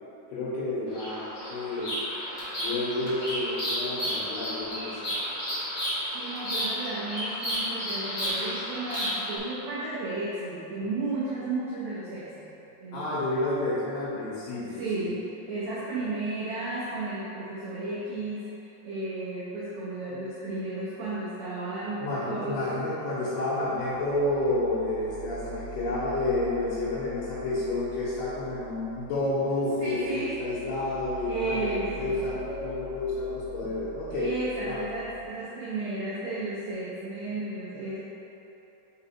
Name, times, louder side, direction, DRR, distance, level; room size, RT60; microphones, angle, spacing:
voice 1, 0.3-2.0 2.6-5.1 12.9-15.1 22.0-34.3 34.6-34.8, left 2 dB, 85° left, -10 dB, 3.1 m, -30 dB
Bird vocalization bird call bird song, 0.9-9.4, equal, 65° left, 1.0 m, -32 dB
voice 2, 6.1-12.5 12.8-13.2 14.7-18.5 18.8-22.6 29.8-30.3 31.2-32.1 34.1-38.0, right 2 dB, 90° right, -9 dB, 1.5 m, -33 dB
sound 1, 23.5-35.3, right 2 dB, 70° right, 2.3 m, -45 dB
6.0 x 3.9 x 4.3 m, 3.0 s
omnidirectional pair, 4.5 m